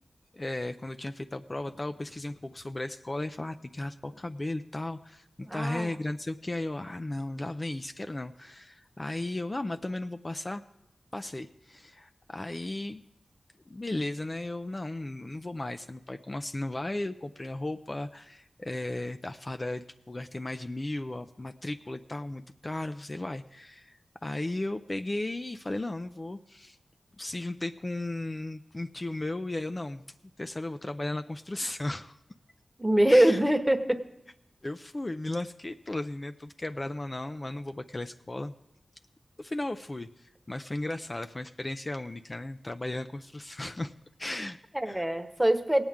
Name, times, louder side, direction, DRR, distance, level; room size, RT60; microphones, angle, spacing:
voice 1, 0.3-5.2 5.5-10.6 11.1-13.0 13.7-26.8 27.2-30.0 30.4-32.2 33.1-33.4 34.6-38.5 39.4-43.9 44.2-44.6 44.9-45.0, left 2 dB, 35° left, 8 dB, 0.4 m, -35 dB
voice 2, 5.4-5.9 32.8-34.0 44.7-45.8, right 1 dB, 15° right, 7 dB, 1.1 m, -23 dB
18.0 x 8.8 x 3.6 m, 0.84 s
cardioid pair, 45°, 0 cm